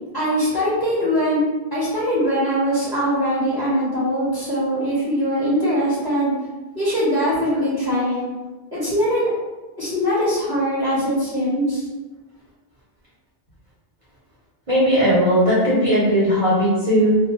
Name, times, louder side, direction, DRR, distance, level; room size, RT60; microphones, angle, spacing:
voice 1, 0.1-1.4 1.7-6.3 6.7-8.2 8.7-9.3 9.8-11.9, equal, 25° left, -10 dB, 0.9 m, -21 dB
voice 2, 14.7-17.2, equal, 35° right, -10 dB, 0.8 m, -17 dB
2.4 x 2.2 x 2.9 m, 1.2 s
omnidirectional pair, 1.0 m